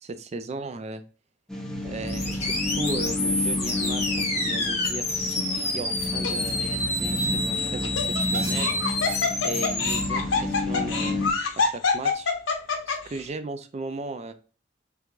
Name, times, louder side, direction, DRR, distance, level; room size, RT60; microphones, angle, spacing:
voice 1, 0.0-1.0 1.8-5.1 5.7-8.7 9.4-11.2 11.6-12.3 12.9-14.3, right 3 dB, 35° right, 10 dB, 0.4 m, -36 dB
sound 1, 1.5-11.3, left 2 dB, 5° left, 0.8 m, -31 dB
sound 2, 2.1-10.0, left 2 dB, 35° left, 1.4 m, -28 dB
Laughter, 5.2-5.6 6.2-6.3 7.6-13.2, left 4 dB, 85° left, 0.8 m, -26 dB
4.7 x 3.4 x 2.4 m, 0.38 s
head